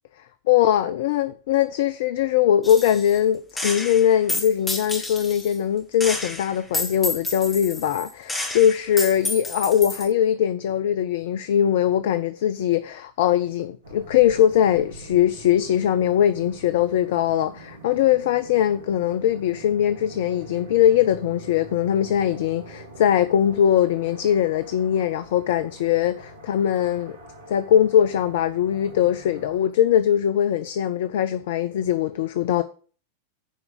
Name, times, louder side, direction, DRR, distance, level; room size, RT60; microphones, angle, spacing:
voice 1, 0.5-27.2 27.5-32.6, left 10 dB, 55° left, 0.6 m, -21 dB
Gunshot gunfire, 2.6-3.2 3.6-5.6 6.0-10.1, left 2 dB, 10° left, 2.5 m, -30 dB
sound 1, 13.8-29.6, right 2 dB, 65° right, 2.2 m, -44 dB
10.0 x 4.8 x 7.6 m
figure-of-eight pair, 90°, 0 cm